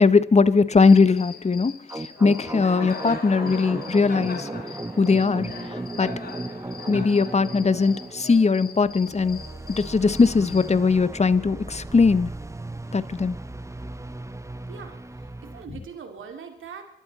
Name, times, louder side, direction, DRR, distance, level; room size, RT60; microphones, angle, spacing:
voice 1, 0.0-4.5 5.0-6.1 6.9-9.4 9.8-12.3 12.9-13.4, left 4 dB, 30° left, 16 dB, 1.0 m, -20 dB
Cricket, 0.7-10.7, left 4 dB, 50° left, 2.3 m, -40 dB
sound 1, 1.9-15.6, right 2 dB, 15° right, 0.9 m, -36 dB
voice 2, 14.7-16.8, right 6 dB, 75° right, 5 dB, 2.7 m, -41 dB
25.0 x 12.5 x 4.2 m, 0.74 s
supercardioid pair, 45°, 21 cm